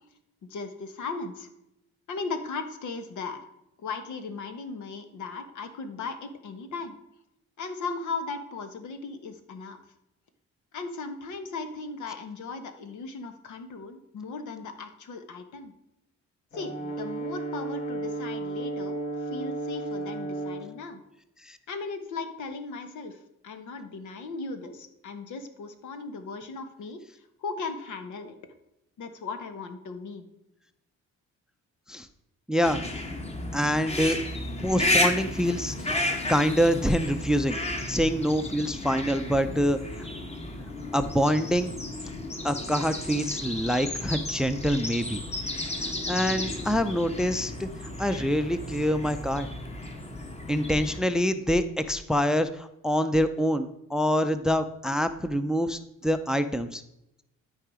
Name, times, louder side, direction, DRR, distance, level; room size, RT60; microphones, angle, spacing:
voice 1, 0.5-1.5 2.1-3.4 3.8-6.9 7.6-9.8 10.7-15.7 16.5-21.0 21.7-23.2 23.4-27.0 27.4-28.3 29.0-30.3, left 4 dB, 75° left, 8 dB, 1.3 m, -37 dB
Brass instrument, 16.5-20.7, right 2 dB, 50° left, 2.1 m, -33 dB
voice 2, 32.5-32.8 33.5-34.2 34.6-35.8 36.3-37.6 37.9-40.1 40.9-41.7 42.4-45.2 46.1-47.7 48.0-49.5 50.5-56.8, equal, ahead, 11 dB, 0.5 m, -25 dB
sound 1, 32.6-51.0, left 1 dB, 20° left, 1.4 m, -33 dB
12.0 x 4.8 x 4.9 m, 0.84 s
cardioid pair, 90°, 30 cm